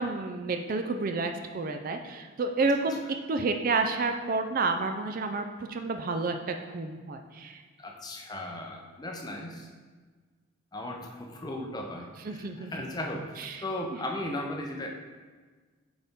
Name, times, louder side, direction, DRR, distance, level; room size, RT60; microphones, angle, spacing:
voice 1, 0.0-3.0 3.3-7.6 12.3-12.7 13.5-13.6, right 3 dB, 40° right, 5 dB, 0.4 m, -30 dB
voice 2, 7.8-9.7 10.7-14.9, left 1 dB, 20° left, 1 dB, 0.6 m, -37 dB
7.8 x 4.2 x 3.6 m, 1.4 s
head